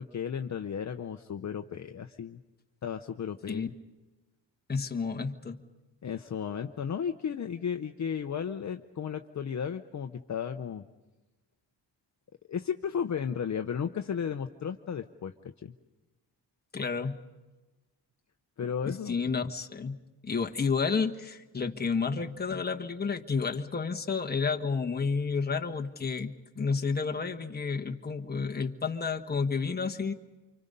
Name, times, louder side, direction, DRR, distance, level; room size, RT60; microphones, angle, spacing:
voice 1, 0.0-2.4 2.8-3.7 6.0-10.8 12.5-15.7 18.6-19.2, left 7 dB, 40° left, 6 dB, 0.8 m, -34 dB
voice 2, 4.7-5.6 16.7-17.2 18.8-20.0 20.2-30.1, left 5 dB, 20° left, 3 dB, 1.3 m, -31 dB
29.0 x 26.0 x 5.4 m, 1.1 s
wide cardioid pair, 165°, 45 cm